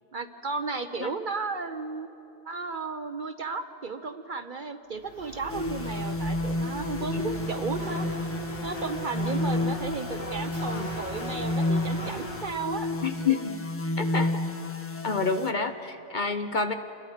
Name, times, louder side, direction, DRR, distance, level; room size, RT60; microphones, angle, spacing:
voice 1, 0.1-2.1 2.4-8.1 8.6-13.0, right 4 dB, 45° right, 8 dB, 0.8 m, -34 dB
sound 1, 4.9-12.4, equal, 80° left, 3.5 m, -39 dB
sound 2, 5.5-15.5, left 1 dB, 20° left, 0.4 m, -31 dB
voice 2, 13.0-13.6 14.0-14.4 15.0-16.7, left 5 dB, 45° left, 7 dB, 0.8 m, -28 dB
28.0 x 22.0 x 5.0 m, 2.8 s
omnidirectional pair, 1.3 m